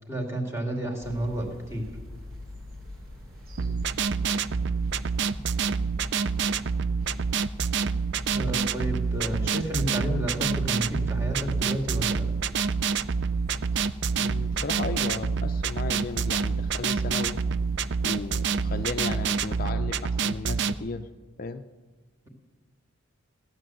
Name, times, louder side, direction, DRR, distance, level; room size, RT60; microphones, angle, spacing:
voice 1, 0.1-1.9 5.3-5.4 8.3-12.3, right 1 dB, 15° right, -1 dB, 2.3 m, -31 dB
sound 1, 1.0-19.7, left 1 dB, 80° right, 6.1 m, -43 dB
sound 2, 3.6-20.7, right 5 dB, 55° right, 0.4 m, -27 dB
voice 2, 14.2-17.4 18.0-21.1 21.4-21.6, left 3 dB, 40° left, 8 dB, 0.5 m, -35 dB
17.0 x 10.5 x 7.7 m, 1.3 s
head